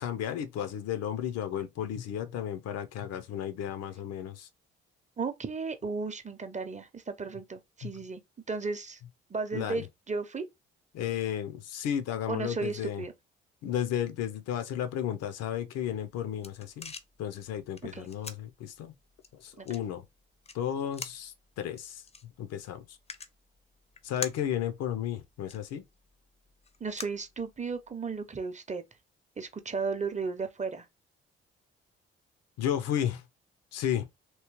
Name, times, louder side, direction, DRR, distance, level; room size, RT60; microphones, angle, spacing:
voice 1, 0.0-4.5 9.5-9.8 10.9-13.0 13.6-16.9 17.2-18.9 19.3-20.0 20.5-22.0 22.4-22.8 24.0-25.8 32.6-33.2 33.7-34.1, left 10 dB, 60° left, 0.7 m, -33 dB
voice 2, 5.2-8.2 8.5-9.0 9.3-10.5 12.3-13.1 17.9-18.1 19.6-19.7 26.8-28.8 29.4-30.9, right 4 dB, 25° right, 0.8 m, -34 dB
sound 1, 15.9-27.9, left 4 dB, 20° left, 0.6 m, -47 dB
3.1 x 3.0 x 3.0 m
figure-of-eight pair, 45°, 30 cm